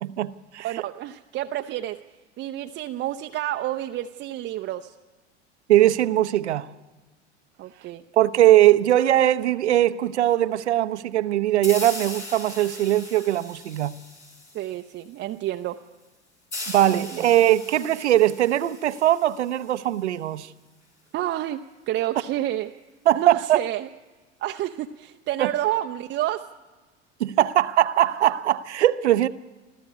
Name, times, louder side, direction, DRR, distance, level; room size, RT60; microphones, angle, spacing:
voice 1, 0.0-0.7 5.7-6.7 8.2-13.9 16.7-20.5 23.1-23.6 25.4-25.5 27.2-29.3, right 13 dB, 70° right, 0.8 m, -20 dB
voice 2, 0.6-2.0 2.4-4.9 7.6-8.0 14.5-15.8 16.9-17.3 21.1-22.7 23.1-23.9 24.4-26.5 27.4-27.5, right 13 dB, 30° right, 0.7 m, -29 dB
sound 1, 11.6-15.0 16.5-20.0, left 2 dB, 80° left, 5.5 m, -39 dB
24.5 x 14.0 x 8.4 m
figure-of-eight pair, 80°, 35 cm